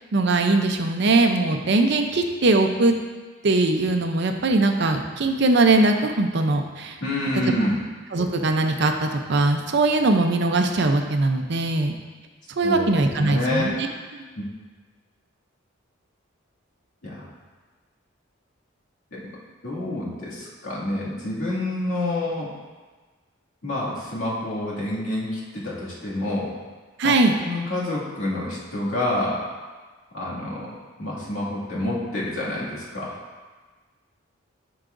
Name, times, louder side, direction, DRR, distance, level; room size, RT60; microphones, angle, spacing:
voice 1, 0.1-2.9 3.4-7.0 8.1-11.9 12.6-13.9 14.1-14.2 27.0-27.3, right 2 dB, 55° right, 5 dB, 0.6 m, -21 dB
voice 2, 7.0-7.8 12.6-12.9 13.2-13.7 14.3-14.4 17.0-17.3 19.1-19.2 19.6-22.5 23.6-26.5 27.0-27.1 27.4-29.4 30.1-33.1, left 1 dB, 85° left, -7 dB, 2.3 m, -28 dB
12.0 x 4.8 x 2.6 m, 1.4 s
head